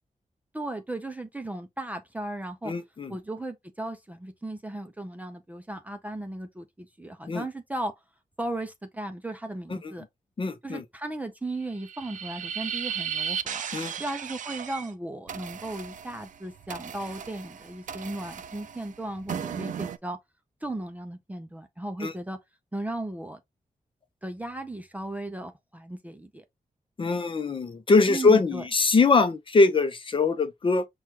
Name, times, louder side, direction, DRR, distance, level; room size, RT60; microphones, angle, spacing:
voice 1, 0.5-2.7 3.1-7.9 8.4-10.0 10.6-13.6 14.0-20.2 20.6-22.4 22.7-23.4 24.2-26.4 28.1-28.6, right 1 dB, 10° right, 0.5 m, -36 dB
voice 2, 2.6-3.1 7.3-7.4 10.4-10.8 13.7-13.9 22.0-22.1 27.0-30.9, left 4 dB, 40° left, 0.6 m, -22 dB
sound 1, 11.7-14.9 15.3-20.0, right 8 dB, 70° right, 0.4 m, -36 dB
6.0 x 2.3 x 2.9 m
wide cardioid pair, 135°, 14 cm